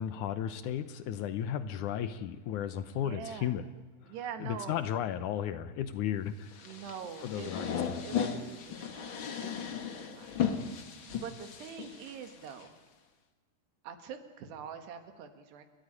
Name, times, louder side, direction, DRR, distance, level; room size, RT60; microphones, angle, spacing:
voice 1, 0.0-3.7 4.4-6.5 7.2-8.0, left 9 dB, 75° left, 12 dB, 1.8 m, -34 dB
voice 2, 2.9-3.5 4.1-4.8 6.6-10.4 11.1-12.7 13.8-15.6, right 7 dB, 85° right, 7 dB, 3.9 m, -45 dB
sound 1, 6.5-12.6, left 7 dB, 50° left, 1.6 m, -36 dB
29.5 x 14.5 x 10.0 m, 1.3 s
omnidirectional pair, 4.6 m